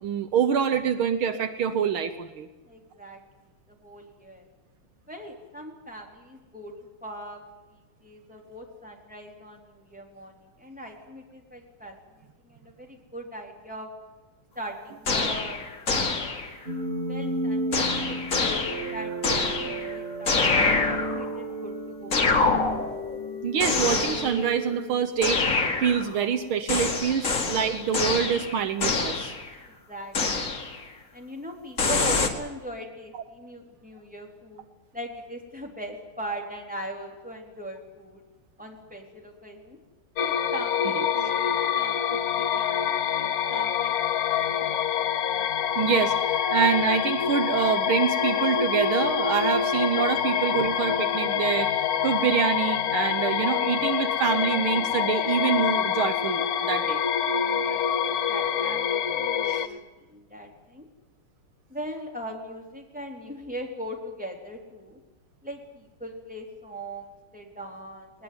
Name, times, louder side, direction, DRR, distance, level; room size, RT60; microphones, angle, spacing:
voice 1, 0.0-2.5 23.4-25.4 25.8-29.3 33.1-33.2 41.0-41.1 45.8-51.7 52.0-57.0 59.5-59.6, right 7 dB, 75° right, 10 dB, 1.8 m, -26 dB
voice 2, 2.7-3.2 3.7-4.5 5.1-6.7 7.0-7.4 7.7-13.9 14.6-16.4 17.1-22.4 29.7-30.5 31.1-34.7 34.9-38.2 38.6-39.8 40.2-44.0 44.2-44.7 50.4-50.5 57.3-60.9 61.7-65.0 65.4-68.2, equal, 5° right, 1 dB, 3.8 m, -40 dB
sound 1, 15.1-16.6 17.7-19.9 20.3-21.4 22.1-23.2 23.6-24.6 25.2-26.2 26.7-29.5 30.1-30.8 31.8-32.3, left 4 dB, 35° left, 2.3 m, -26 dB
sound 2, 16.7-25.6, right 1 dB, 25° right, 7.9 m, -33 dB
sound 3, 40.2-59.7, left 8 dB, 55° left, 1.1 m, -26 dB
20.5 x 20.0 x 9.6 m, 1.1 s
omnidirectional pair, 2.4 m